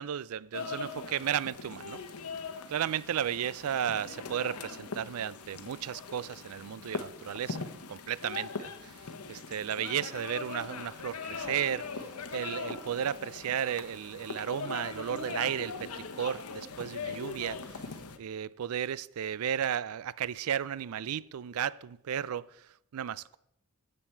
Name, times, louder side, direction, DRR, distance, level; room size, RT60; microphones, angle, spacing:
voice 1, 0.0-2.0 2.7-23.4, right 9 dB, 75° right, 0.4 m, -34 dB
sound 1, 0.5-18.2, left 4 dB, 90° left, 0.9 m, -41 dB
13.5 x 7.7 x 4.5 m
head